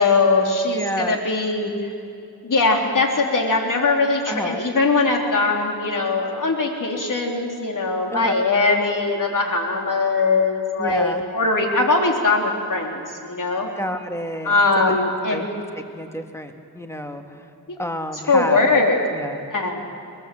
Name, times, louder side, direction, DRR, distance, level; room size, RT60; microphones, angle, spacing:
voice 1, 0.0-1.9 2.4-13.7 14.4-15.5 18.3-19.0 19.5-19.8, left 3 dB, 50° left, 1 dB, 3.4 m, -21 dB
voice 2, 0.7-1.2 4.3-4.6 8.1-8.3 10.8-11.2 13.8-14.5 14.9-15.0 15.3-15.4 15.9-17.4 17.8-18.7 19.1-19.5, left 1 dB, 5° left, 5 dB, 1.8 m, -29 dB
22.0 x 21.5 x 7.8 m, 2.5 s
cardioid pair, 80°, 39 cm